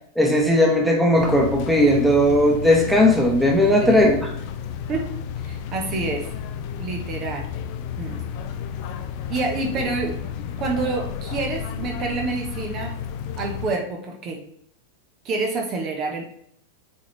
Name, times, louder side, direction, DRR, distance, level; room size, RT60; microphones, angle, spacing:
voice 1, 0.1-4.3, left 1 dB, 5° right, 0 dB, 1.3 m, -17 dB
sound 1, 1.2-13.7, left 8 dB, 45° left, 0.6 m, -32 dB
voice 2, 5.4-6.3 6.8-7.5 8.0-8.2 9.3-10.2 10.6-13.0 13.4-14.4 15.2-16.3, right 3 dB, 35° right, 1 dB, 1.1 m, -28 dB
7.2 x 3.9 x 3.4 m, 0.66 s
figure-of-eight pair, 90°, 0 cm